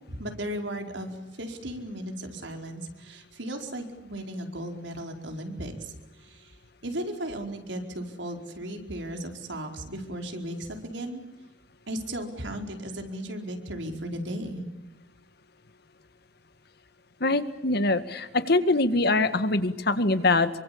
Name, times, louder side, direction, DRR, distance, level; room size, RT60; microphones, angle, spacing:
voice 1, 0.1-6.5 6.8-11.2 11.9-14.7, right 1 dB, 80° right, 4 dB, 4.8 m, -36 dB
voice 2, 17.2-20.5, left 2 dB, 60° left, 11 dB, 1.8 m, -23 dB
27.5 x 24.5 x 8.6 m, 0.94 s
head